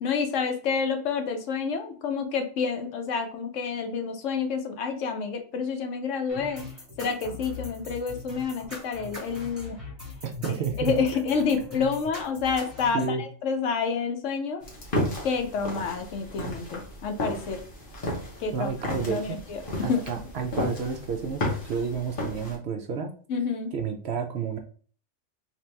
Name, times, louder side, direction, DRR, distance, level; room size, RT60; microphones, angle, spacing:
voice 1, 0.0-6.6 7.0-9.8 10.8-14.6 15.2-17.6 18.4-18.7 19.1-19.6 19.9-20.0 23.3-23.7, left 5 dB, 70° left, 6 dB, 1.0 m, -28 dB
sound 1, 6.3-13.1, left 4 dB, 25° right, 1.5 m, -41 dB
voice 2, 10.2-10.9 12.9-13.2 18.5-19.4 19.8-23.1 23.7-24.6, right 5 dB, 65° right, 4 dB, 0.7 m, -30 dB
sound 2, 14.6-22.6, left 1 dB, 45° left, 1.2 m, -33 dB
3.4 x 2.9 x 3.2 m, 0.43 s
omnidirectional pair, 1.3 m